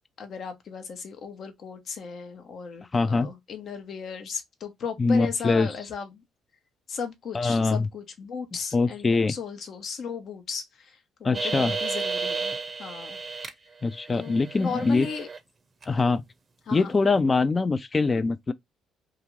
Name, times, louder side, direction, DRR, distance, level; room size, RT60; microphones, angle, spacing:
voice 1, 0.2-6.2 6.9-13.4 14.1-15.3 16.7-16.9, left 5 dB, 60° left, 0.8 m, -36 dB
voice 2, 2.9-3.3 5.0-5.7 7.3-7.9 8.7-9.3 11.2-11.7 13.8-15.1 15.9-16.2 16.7-18.5, left 3 dB, 30° left, 0.4 m, -23 dB
sound 1, 11.3-13.5 13.9-15.4 15.8-15.9, right 4 dB, 35° right, 0.6 m, -32 dB
2.5 x 2.4 x 3.0 m
supercardioid pair, 60°, 0 cm